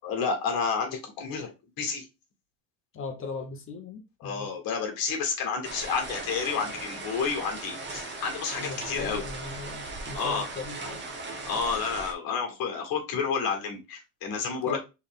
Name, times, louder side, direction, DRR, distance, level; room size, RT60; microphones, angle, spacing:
voice 1, 0.0-2.1 4.2-9.2 10.1-10.5 11.5-14.8, left 5 dB, 50° left, 1.7 m, -30 dB
voice 2, 2.9-4.5 8.6-11.0 14.6-14.8, left 4 dB, 25° left, 0.7 m, -38 dB
sound 1, 5.6-12.1, right 2 dB, 25° right, 0.8 m, -38 dB
4.0 x 3.3 x 3.6 m
cardioid pair, 175°, 47 cm